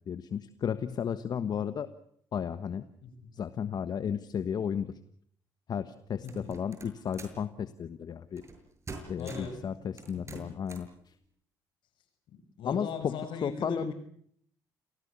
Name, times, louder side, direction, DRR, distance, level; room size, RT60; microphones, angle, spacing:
voice 1, 0.1-1.9 2.3-2.8 3.3-5.0 5.7-8.4 9.1-11.1 12.6-13.9, left 8 dB, 55° left, 12 dB, 1.3 m, -34 dB
voice 2, 6.2-6.5 9.2-9.6 10.1-10.4 12.3-13.9, left 4 dB, 70° left, 10 dB, 6.0 m, -39 dB
sound 1, 6.3-7.4 8.4-8.6 8.9-9.6 10.0-10.9, right 3 dB, 35° right, 7.2 m, -45 dB
28.5 x 18.0 x 8.3 m, 0.66 s
supercardioid pair, 65°, 9 cm